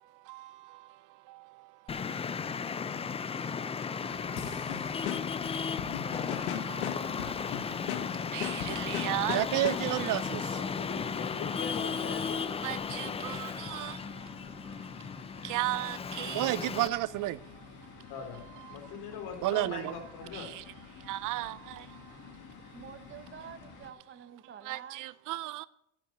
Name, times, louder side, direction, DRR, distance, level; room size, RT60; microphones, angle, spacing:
Traffic noise roadway noise, 1.9-16.9, left 6 dB, 15° left, 0.4 m, -35 dB
sound 1, 4.0-23.9, left 6 dB, 45° left, 2.0 m, -51 dB
sound 2, 4.4-10.1, left 11 dB, 85° left, 1.3 m, -39 dB
voice 1, 8.3-10.4 12.6-13.9 15.4-17.4 19.4-19.9 20.3-20.5 21.1-21.6 24.7-25.7, right 17 dB, 50° right, 0.5 m, -32 dB
voice 2, 10.5-12.4 18.1-18.4 18.7-20.5, left 6 dB, 60° left, 3.4 m, -41 dB
voice 3, 22.7-25.0, right 8 dB, 30° right, 0.9 m, -48 dB
10.0 x 8.6 x 7.4 m
supercardioid pair, 110°, 42 cm